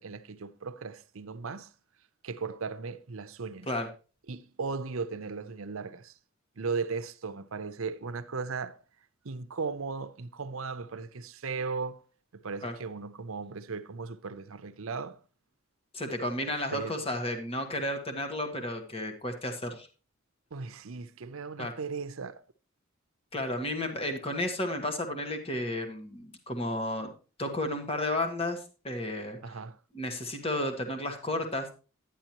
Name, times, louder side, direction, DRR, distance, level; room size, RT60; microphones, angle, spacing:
voice 1, 0.0-1.7 2.2-3.7 4.3-6.1 6.6-8.8 9.2-12.0 12.3-15.2 16.7-17.0 20.5-22.4 29.4-29.8, right 4 dB, 85° right, 0.7 m, -37 dB
voice 2, 15.9-19.9 21.6-21.7 23.3-27.1 27.4-29.4 29.9-31.8, left 1 dB, 30° left, 1.4 m, -32 dB
10.5 x 10.0 x 3.0 m
head